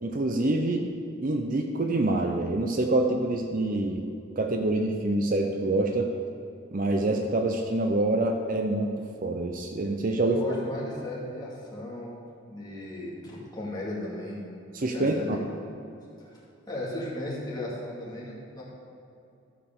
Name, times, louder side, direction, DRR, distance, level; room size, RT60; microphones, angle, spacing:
voice 1, 0.0-0.9 1.2-4.0 4.4-6.1 6.7-8.9 9.2-10.4 14.7-15.4, right 2 dB, 40° right, 4 dB, 0.6 m, -26 dB
voice 2, 10.2-12.1 12.5-14.4 14.9-15.4 16.3-16.4 16.7-18.6, left 1 dB, 20° left, -6 dB, 2.3 m, -35 dB
13.0 x 5.1 x 6.8 m, 2.6 s
head